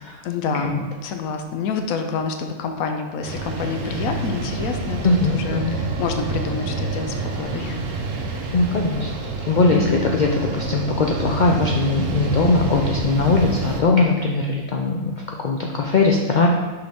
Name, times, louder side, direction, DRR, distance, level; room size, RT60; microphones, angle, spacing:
voice 1, 0.2-7.8 9.7-10.1, left 5 dB, 85° left, 5 dB, 1.1 m, -27 dB
sound 1, 3.2-13.8, right 3 dB, 70° right, 1.1 m, -27 dB
voice 2, 5.0-5.8 8.5-9.1 9.4-16.5, left 3 dB, 70° left, 0 dB, 0.4 m, -20 dB
6.3 x 4.8 x 3.5 m, 1.3 s
omnidirectional pair, 1.4 m